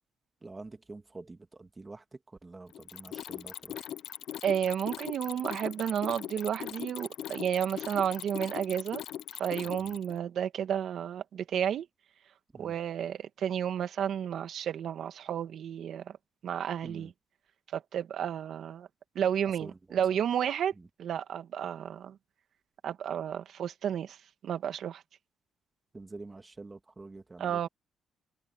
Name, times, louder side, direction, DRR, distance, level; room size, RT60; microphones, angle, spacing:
voice 1, 0.4-2.0 2.4-3.8 9.8-9.9 12.5-12.7 16.8-17.1 19.6-19.7 25.9-27.7, right 3 dB, 25° right, 2.3 m, -47 dB
Mechanisms, 2.7-10.2, left 11 dB, 75° left, 0.8 m, -40 dB
voice 2, 4.4-9.0 9.4-11.9 12.6-16.1 16.4-17.1 17.7-18.9 19.2-20.7 21.0-22.2 22.8-24.2 24.4-25.0 27.4-27.7, right 9 dB, 65° right, 2.2 m, -32 dB
cardioid pair, 90°, 0 cm